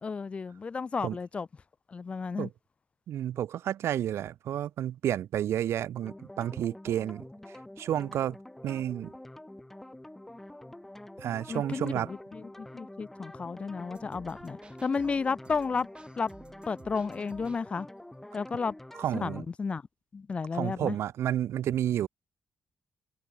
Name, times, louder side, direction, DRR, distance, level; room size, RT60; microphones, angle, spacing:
voice 1, 0.0-1.5 1.9-2.5 11.5-15.9 16.2-16.3 16.7-17.9 18.3-18.7 19.1-19.8 20.1-21.0, left 5 dB, 25° left, 0.6 m, -32 dB
voice 2, 3.1-7.2 7.8-8.4 8.6-9.1 11.2-12.1 18.9-19.4 20.5-22.1, right 11 dB, 85° right, 0.6 m, -31 dB
sound 1, 6.0-19.4, left 1 dB, 5° left, 4.5 m, -47 dB
sound 2, 13.9-17.8, right 4 dB, 25° right, 6.1 m, -54 dB
wide cardioid pair, 180°, 4 cm